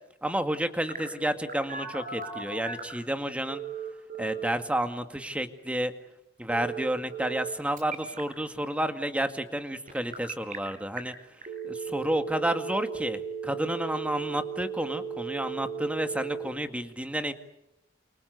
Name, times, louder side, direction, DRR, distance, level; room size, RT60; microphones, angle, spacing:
voice 1, 0.2-3.6 4.2-5.9 6.4-11.1 11.6-17.3, right 1 dB, 5° right, 8 dB, 2.1 m, -30 dB
Telephone, 0.9-3.0 3.5-4.5 6.5-7.5 7.8-8.2 9.9-10.6 11.0-11.1 11.4-16.5, right 6 dB, 45° right, 7.3 m, -36 dB
30.0 x 28.5 x 6.9 m, 0.84 s
head